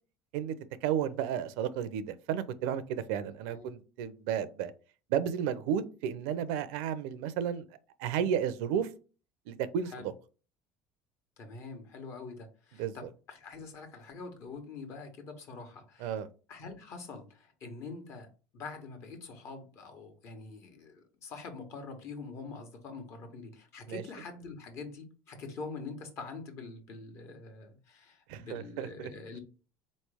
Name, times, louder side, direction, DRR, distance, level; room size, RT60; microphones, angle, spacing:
voice 1, 0.8-4.7 5.1-7.6 8.0-8.9 9.5-9.9 12.8-12.9 16.0-16.3 23.9-24.0 28.3-29.1, right 9 dB, 80° right, 0.5 m, -32 dB
voice 2, 11.4-16.1 16.5-18.3 18.5-29.4, left 4 dB, 55° left, 1.3 m, -45 dB
4.0 x 3.2 x 3.4 m
supercardioid pair, 105°, 6 cm